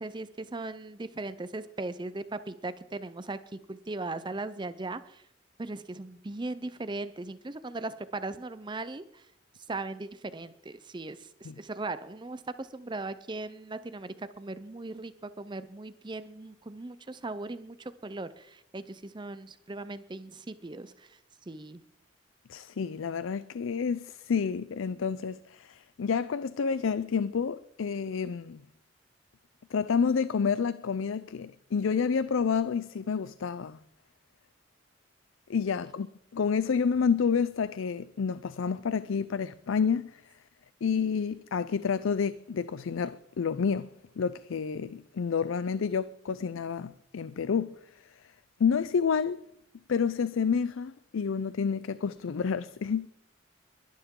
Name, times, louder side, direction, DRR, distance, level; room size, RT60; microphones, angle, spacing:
voice 1, 0.0-5.2 5.6-9.3 9.7-21.2 21.5-21.8, right 2 dB, 25° right, 0.5 m, -38 dB
voice 2, 22.5-28.6 29.7-33.8 35.5-36.1 36.3-40.2 40.8-43.9 44.2-47.7 48.6-49.4 49.9-53.1, left 6 dB, 80° left, 0.4 m, -29 dB
22.0 x 11.5 x 3.7 m
head